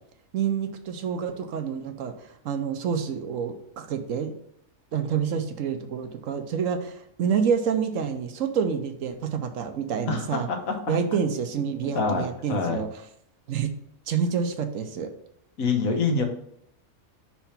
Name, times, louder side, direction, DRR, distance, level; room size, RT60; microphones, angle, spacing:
voice 1, 0.3-4.3 4.9-10.5 10.9-12.9 13.5-13.7 14.1-15.1 16.1-16.2, right 7 dB, 75° right, 7 dB, 1.1 m, -28 dB
voice 2, 10.1-11.2 11.8-12.8 15.6-16.2, left 5 dB, 85° left, 4 dB, 1.5 m, -27 dB
5.8 x 3.4 x 5.7 m, 0.71 s
omnidirectional pair, 1.4 m